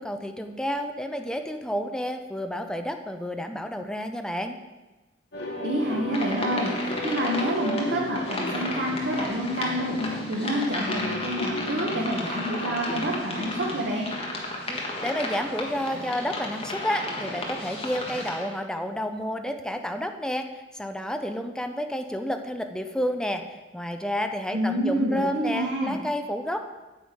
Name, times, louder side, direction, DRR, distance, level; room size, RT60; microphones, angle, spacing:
voice 1, 0.0-4.6 14.7-20.5 20.7-23.4 23.7-26.8, equal, 5° left, 6 dB, 0.5 m, -30 dB
sound 1, 5.3-13.9, left 1 dB, 65° left, 1.4 m, -34 dB
voice 2, 5.6-14.1 24.5-26.0, right 1 dB, 80° right, -2 dB, 1.3 m, -28 dB
sound 2, 6.1-18.4, left 2 dB, 35° left, 1.6 m, -34 dB
8.9 x 8.5 x 5.1 m, 1.1 s
head